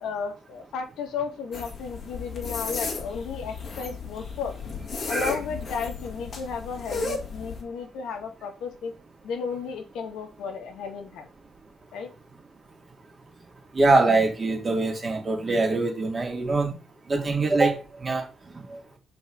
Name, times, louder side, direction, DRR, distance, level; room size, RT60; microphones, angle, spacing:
voice 1, 0.0-4.6 5.1-8.9 9.2-11.3 11.9-12.1, left 5 dB, 80° left, 1.4 m, -34 dB
sound 1, 1.5-7.6, left 4 dB, 50° left, 1.9 m, -34 dB
voice 2, 13.7-16.7 17.1-18.2 18.7-18.8, right 3 dB, 30° right, 2.0 m, -23 dB
5.5 x 4.2 x 5.0 m
cardioid pair, 90°, 0 cm